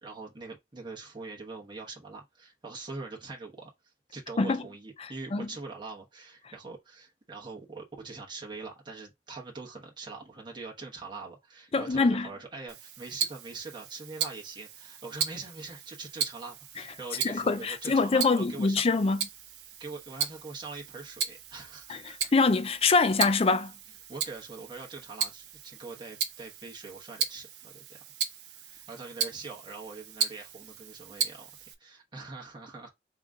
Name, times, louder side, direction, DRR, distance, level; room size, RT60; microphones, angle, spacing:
voice 1, 0.0-3.7 4.1-18.8 19.8-22.3 24.1-27.8 28.6-31.5 31.8-32.9, right 3 dB, 25° right, 1.1 m, -43 dB
voice 2, 11.7-12.3 17.2-19.2 21.9-22.0 22.3-23.7, left 3 dB, 35° left, 0.5 m, -24 dB
Tick-tock, 12.7-31.7, right 8 dB, 70° right, 0.7 m, -37 dB
3.7 x 3.0 x 3.6 m
head